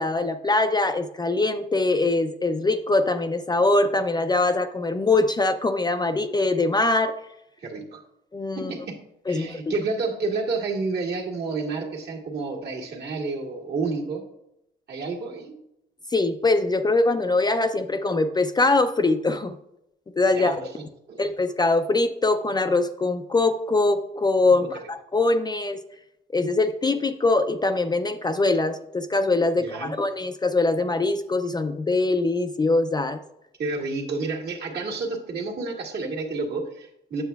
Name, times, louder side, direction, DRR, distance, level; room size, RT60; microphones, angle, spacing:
voice 1, 0.0-7.2 8.3-8.7 9.3-9.6 16.1-19.6 20.2-20.6 21.2-25.8 26.3-33.2, left 2 dB, 20° left, 8 dB, 0.4 m, -23 dB
voice 2, 7.6-8.0 8.5-9.0 9.3-14.2 14.9-15.6 20.3-20.7 21.1-21.2 24.6-24.7 29.6-29.9 33.6-37.2, right 3 dB, 60° right, -1 dB, 1.6 m, -30 dB
7.9 x 6.9 x 2.3 m, 0.82 s
cardioid pair, 90°, 20 cm